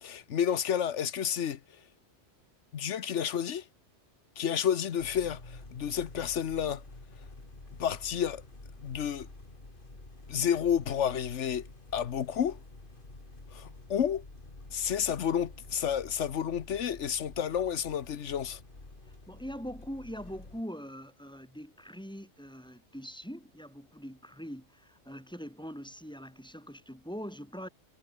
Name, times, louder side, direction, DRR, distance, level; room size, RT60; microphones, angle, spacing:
voice 1, 0.0-1.6 2.7-3.6 4.4-6.8 7.8-8.4 8.8-9.3 10.3-11.6 11.9-12.6 13.5-14.2 14.7-18.6, left 8 dB, 90° left, 1.3 m, -30 dB
sound 1, 5.0-20.6, left 2 dB, 50° left, 3.4 m, -49 dB
voice 2, 19.3-27.7, equal, 5° left, 6.8 m, -42 dB
omnidirectional pair, 1.2 m